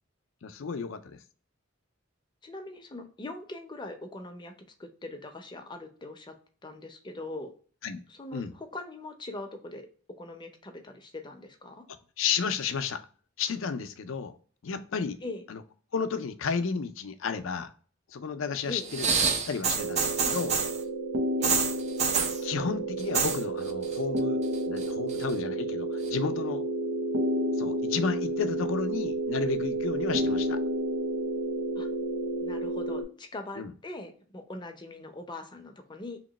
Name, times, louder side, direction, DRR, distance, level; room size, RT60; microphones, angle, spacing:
voice 1, 0.4-1.2 7.8-8.0 8.3-8.5 12.2-13.0 13.4-14.3 14.6-15.2 15.5-15.6 15.9-17.7 18.1-19.2 19.5-20.6 22.4-26.6 27.6-30.6 33.6-33.7, left 5 dB, 70° left, 0.5 m, -32 dB
voice 2, 2.4-4.5 4.8-6.4 6.6-7.5 8.1-9.9 10.2-11.8 15.2-15.4 18.7-18.9 21.4-21.6 31.8-31.9 32.4-36.2, left 2 dB, 25° left, 0.6 m, -41 dB
sound 1, 18.8-20.8 21.4-22.4 23.0-23.4 23.7-24.2 24.5-25.3 26.1-26.2, right 5 dB, 35° right, 0.4 m, -27 dB
sound 2, 19.8-33.0, right 1 dB, 85° right, 0.7 m, -31 dB
3.0 x 2.9 x 3.9 m
head